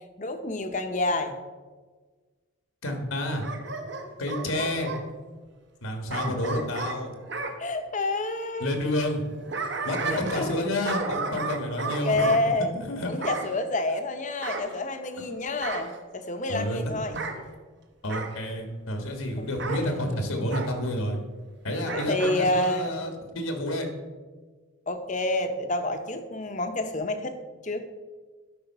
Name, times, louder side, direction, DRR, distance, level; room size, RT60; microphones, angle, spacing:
voice 1, 0.2-1.4 6.3-6.4 7.6-8.7 10.1-10.7 11.8-12.7 13.0-17.2 19.4-20.1 21.9-22.9 24.9-27.3 27.6-27.9, left 2 dB, 35° left, 8 dB, 0.8 m, -28 dB
voice 2, 2.8-3.4 4.2-4.9 5.8-7.2 8.6-9.2 9.8-13.4 16.5-16.8 17.1-17.2 18.0-21.2 21.6-23.9, left 1 dB, 80° left, 4 dB, 1.5 m, -30 dB
Bark / Growling, 3.4-5.0 6.1-7.6 9.2-10.6 10.8-12.4 13.2-13.5 14.4-15.2 15.6-16.0 17.1-17.4 18.1-18.4 19.6-19.9 20.5-20.7 21.8-22.4 22.8-22.9, right 3 dB, 55° right, 1.0 m, -33 dB
12.0 x 5.1 x 5.5 m, 1.4 s
head